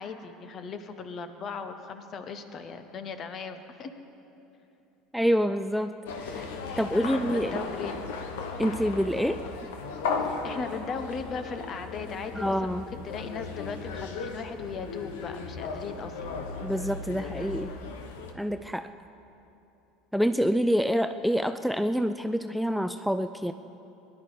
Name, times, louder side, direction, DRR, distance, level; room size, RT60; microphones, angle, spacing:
voice 1, 0.0-3.9 6.7-8.1 10.2-16.5, left 5 dB, 40° left, 8 dB, 1.1 m, -38 dB
voice 2, 5.1-6.5 6.8-7.6 8.6-9.4 12.4-12.8 16.6-17.8 18.3-18.9 20.1-23.5, equal, ahead, 8 dB, 0.4 m, -27 dB
sound 1, 6.1-18.3, left 4 dB, 75° left, 1.1 m, -36 dB
19.0 x 11.0 x 4.9 m, 3.0 s
hypercardioid pair, 75°, 0 cm